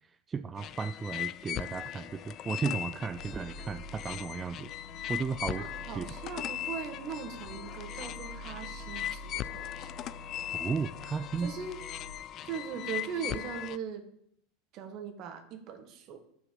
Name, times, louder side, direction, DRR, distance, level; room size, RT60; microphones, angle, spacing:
voice 1, 0.0-4.7 5.1-5.7 6.0-6.1 10.5-11.5, right 5 dB, 20° right, 11 dB, 0.4 m, -35 dB
sound 1, 0.6-13.8, left 12 dB, 40° left, 0.5 m, -39 dB
sound 2, 3.0-12.1, equal, 70° left, 1.8 m, -48 dB
voice 2, 5.6-9.9 11.4-11.8 12.4-14.1 14.7-16.2, right 7 dB, 45° right, 7 dB, 1.8 m, -40 dB
10.0 x 6.2 x 7.5 m, 0.70 s
supercardioid pair, 130°, 0 cm